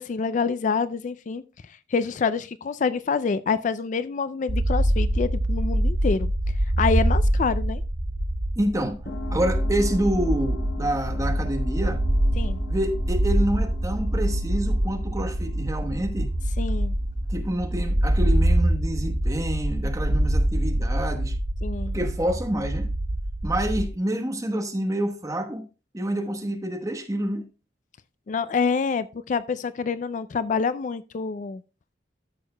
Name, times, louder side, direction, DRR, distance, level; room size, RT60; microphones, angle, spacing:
voice 1, 0.0-1.4 1.9-6.3 6.8-7.8 12.4-12.6 16.6-16.9 21.6-21.9 28.3-31.6, left 5 dB, 40° left, 0.3 m, -26 dB
sound 1, 4.5-23.9, right 1 dB, 55° right, 1.0 m, -25 dB
voice 2, 8.6-9.1 9.3-12.0 12.7-16.3 17.3-21.4 21.9-22.9 23.4-25.6 25.9-27.5, right 1 dB, 20° right, 1.1 m, -28 dB
sound 2, 9.1-17.2, left 4 dB, 85° left, 3.4 m, -41 dB
13.0 x 6.4 x 2.2 m
head